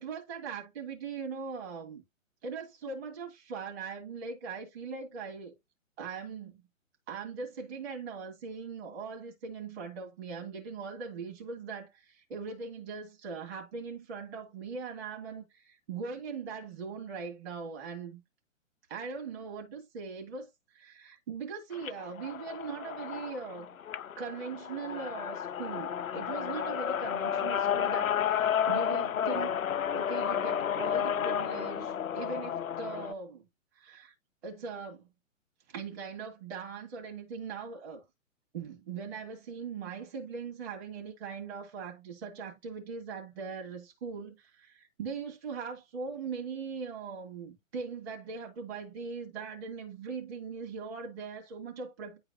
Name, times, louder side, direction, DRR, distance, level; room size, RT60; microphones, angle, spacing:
voice 1, 0.0-2.0 2.4-5.5 6.0-6.6 7.1-18.2 18.9-23.8 24.2-29.5 29.9-33.4 33.7-34.1 34.4-35.0 35.7-38.0 38.5-52.2, right 5 dB, 50° right, 2.3 m, -40 dB
sound 1, 21.7-33.1, left 9 dB, 90° left, 0.5 m, -32 dB
10.0 x 4.0 x 2.5 m
figure-of-eight pair, 130°, 40 cm